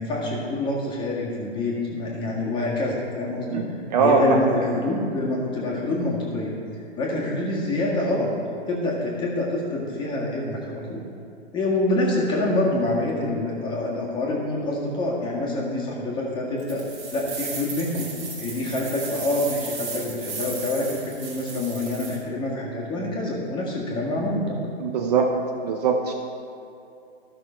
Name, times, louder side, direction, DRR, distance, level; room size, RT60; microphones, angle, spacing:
voice 1, 0.0-8.3 8.7-11.0 11.5-16.8 17.1-18.1 18.4-24.6, left 2 dB, 15° left, -4 dB, 1.6 m, -26 dB
voice 2, 3.5-4.5 24.8-25.3 25.6-26.1, right 5 dB, 40° right, 3 dB, 0.7 m, -21 dB
sound 1, 16.6-22.2, right 4 dB, 20° right, 1.6 m, -35 dB
13.5 x 6.0 x 4.4 m, 2.6 s
hypercardioid pair, 145°, 33 cm